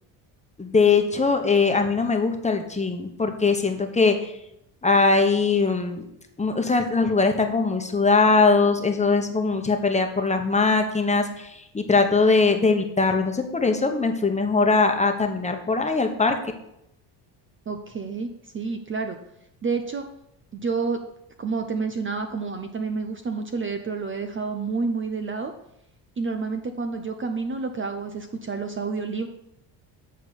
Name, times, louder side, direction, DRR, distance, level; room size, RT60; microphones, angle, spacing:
voice 1, 0.6-4.3 4.8-6.0 6.4-16.4, left 4 dB, 15° left, 4 dB, 1.2 m, -21 dB
voice 2, 17.7-19.2 19.6-20.0 20.5-21.0 21.4-25.5 26.2-29.3, right 4 dB, 25° right, 6 dB, 0.7 m, -29 dB
8.4 x 4.4 x 7.0 m, 0.79 s
cardioid pair, 105°, 45 cm